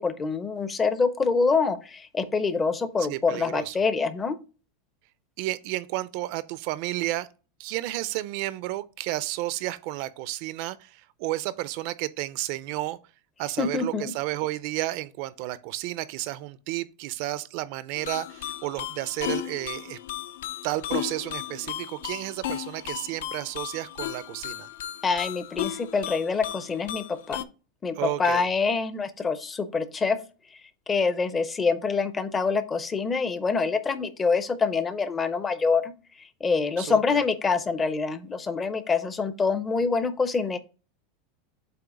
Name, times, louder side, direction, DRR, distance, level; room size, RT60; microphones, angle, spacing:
voice 1, 0.0-4.4 13.6-14.1 25.0-27.4 27.8-30.2 30.9-35.9 36.2-40.6, left 4 dB, 15° left, 0.5 m, -26 dB
voice 2, 3.0-3.7 5.4-7.3 7.6-13.0 13.4-20.0 20.6-24.7 28.0-28.5 36.8-37.0, right 16 dB, 45° right, 0.4 m, -32 dB
sound 1, 18.0-27.4, left 12 dB, 75° left, 0.5 m, -35 dB
7.7 x 2.8 x 4.8 m
supercardioid pair, 170°, 0 cm